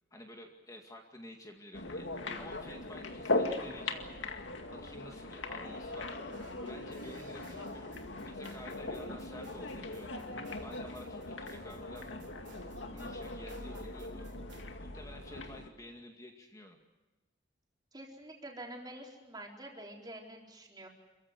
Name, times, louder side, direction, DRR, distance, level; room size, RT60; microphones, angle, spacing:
voice 1, 0.1-2.1 2.4-4.0 4.7-6.2 6.7-7.9 8.2-10.2 10.6-12.1 12.9-14.3 14.8-16.8, left 1 dB, 20° left, 2 dB, 2.2 m, -51 dB
sound 1, 1.7-15.7, left 2 dB, 80° left, 2.1 m, -39 dB
sound 2, 6.3-14.6, right 3 dB, 70° right, 4.1 m, -59 dB
voice 2, 17.9-20.9, right 1 dB, 20° right, 0 dB, 4.3 m, -47 dB
28.0 x 15.5 x 9.7 m, 1.1 s
head